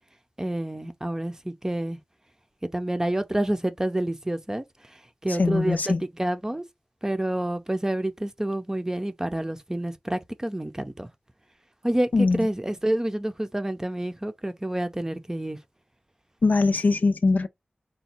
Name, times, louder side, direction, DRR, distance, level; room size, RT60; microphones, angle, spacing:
voice 1, 0.4-2.0 2.7-4.6 5.2-6.6 7.0-11.1 11.8-15.6, right 1 dB, 20° right, 0.6 m, -28 dB
voice 2, 5.4-6.0 12.1-12.5 16.4-17.5, left 3 dB, 65° left, 0.5 m, -21 dB
4.0 x 2.2 x 4.3 m
wide cardioid pair, 70°, 3 cm